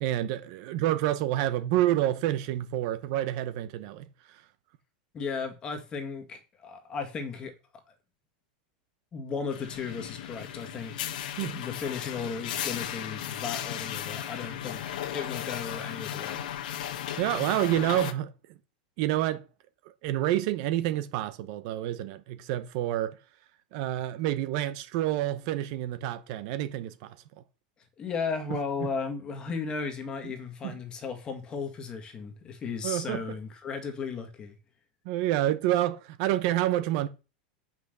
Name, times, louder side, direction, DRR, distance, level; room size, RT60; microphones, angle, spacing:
voice 1, 0.0-4.4 11.4-11.6 17.2-18.3 19.0-19.5 20.0-23.2 23.7-27.2 28.8-28.9 30.2-30.3 30.6-30.7 32.8-33.2 35.0-37.1, right 13 dB, 45° right, 0.8 m, -28 dB
voice 2, 5.1-7.5 9.1-10.9 11.6-14.8 15.1-16.4 28.0-34.6, left 5 dB, 20° left, 1.8 m, -35 dB
sound 1, 9.5-18.1, left 11 dB, 70° left, 1.4 m, -36 dB
8.3 x 5.9 x 6.6 m
supercardioid pair, 170°, 5 cm